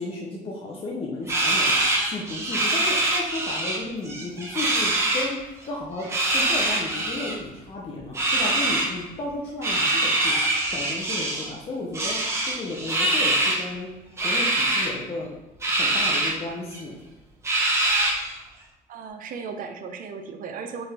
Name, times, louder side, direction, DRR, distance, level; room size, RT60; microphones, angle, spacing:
voice 1, 0.0-12.2 12.4-13.9 14.2-15.3 15.7-17.0, left 2 dB, 35° left, -2 dB, 0.6 m, -34 dB
sound 1, 1.3-3.8 4.0-5.3 6.0-7.3 8.1-8.9 9.6-11.5 11.9-13.6 14.2-14.9 15.6-16.3 16.7-16.8 17.4-18.3, right 2 dB, 15° right, 0.9 m, -24 dB
voice 2, 18.9-20.9, right 5 dB, 55° right, 6 dB, 0.5 m, -36 dB
4.7 x 2.5 x 3.3 m, 1.1 s
cardioid pair, 110°, 17 cm